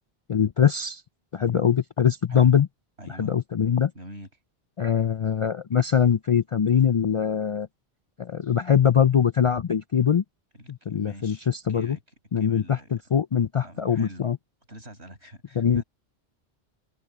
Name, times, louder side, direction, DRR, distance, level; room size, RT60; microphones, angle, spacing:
voice 1, 0.3-1.0 1.3-2.7 3.2-3.9 4.8-7.7 8.2-10.2 10.7-12.0 12.3-14.4 15.6-15.8, left 8 dB, 55° left, 0.3 m, -22 dB
voice 2, 2.3-2.6 3.0-3.3 3.9-4.3 10.5-12.0 12.4-13.0 13.6-14.3 14.7-15.8, right 1 dB, 85° right, 8.2 m, -44 dB
omnidirectional pair, 1.1 m